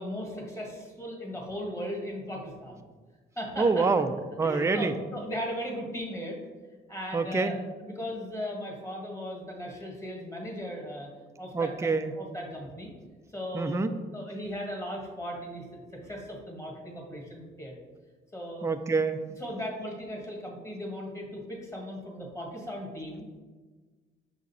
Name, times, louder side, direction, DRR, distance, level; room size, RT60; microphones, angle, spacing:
voice 1, 0.0-2.9 3.3-3.8 4.4-6.4 6.9-11.1 11.4-12.9 13.3-13.8 14.1-17.7 18.3-18.7 19.4-23.3, equal, 15° left, 0 dB, 1.6 m, -37 dB
voice 2, 3.6-4.1 4.4-4.9 7.1-7.5 11.5-12.1 13.5-13.9 18.6-19.2, right 4 dB, 15° right, 8 dB, 0.4 m, -26 dB
6.1 x 3.8 x 4.2 m, 1.4 s
cardioid pair, 90°, 20 cm